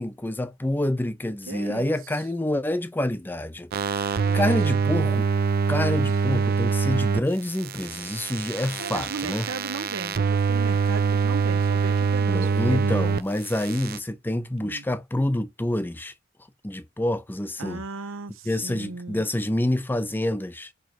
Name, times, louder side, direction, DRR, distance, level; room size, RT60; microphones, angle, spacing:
voice 1, 0.0-3.7 4.0-5.3 5.7-9.5 12.3-16.1 16.6-17.8 18.5-20.7, left 1 dB, 10° left, 0.5 m, -27 dB
voice 2, 1.5-1.9 4.2-4.6 8.8-13.1 14.6-14.8 17.6-19.3, right 4 dB, 80° right, 0.8 m, -36 dB
sound 1, 3.7-7.2 7.5-13.2 13.5-14.0, right 5 dB, 50° right, 0.5 m, -24 dB
5.0 x 4.5 x 4.5 m
head